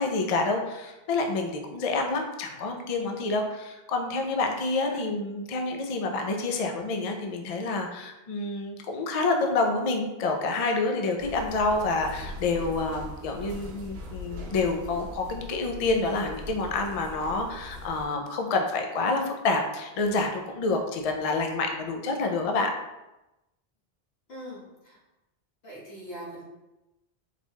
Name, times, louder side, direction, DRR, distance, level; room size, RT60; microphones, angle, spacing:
voice 1, 0.0-22.7, left 3 dB, 50° left, 3 dB, 0.5 m, -28 dB
sound 1, 11.2-18.1, left 2 dB, 80° right, 1.0 m, -41 dB
voice 2, 24.3-25.0 25.6-26.4, equal, 80° left, -4 dB, 1.5 m, -42 dB
4.2 x 2.3 x 4.4 m, 0.98 s
omnidirectional pair, 1.0 m